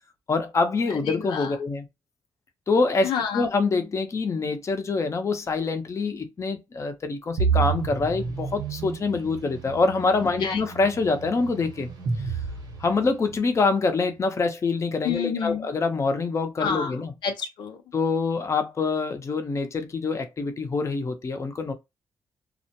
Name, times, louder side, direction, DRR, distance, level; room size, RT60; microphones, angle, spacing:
voice 1, 0.3-1.9 2.7-11.9 12.8-17.1 17.9-21.7, left 4 dB, 40° left, 0.6 m, -25 dB
voice 2, 1.1-1.5 3.0-3.4 10.4-10.6 15.0-15.7 16.6-16.9 17.2-17.8, left 7 dB, 80° left, 0.5 m, -28 dB
sound 1, 7.4-13.3, right 6 dB, 75° right, 1.0 m, -30 dB
2.4 x 2.1 x 2.8 m
cardioid pair, 75°, 8 cm